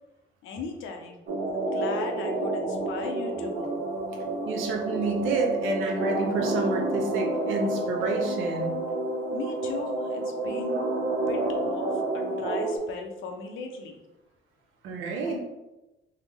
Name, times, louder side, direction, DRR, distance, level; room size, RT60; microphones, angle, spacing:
voice 1, 0.4-1.2 1.5-3.8 9.3-10.8 11.3-11.4 11.7-13.9 15.2-15.5, left 4 dB, 80° left, 4 dB, 0.5 m, -38 dB
sound 1, 1.3-12.8, right 2 dB, 55° right, 0.8 m, -29 dB
voice 2, 4.5-8.8 14.8-15.4, right 3 dB, 90° right, 2 dB, 0.6 m, -29 dB
3.4 x 2.0 x 3.3 m, 0.99 s
cardioid pair, 90°, 20 cm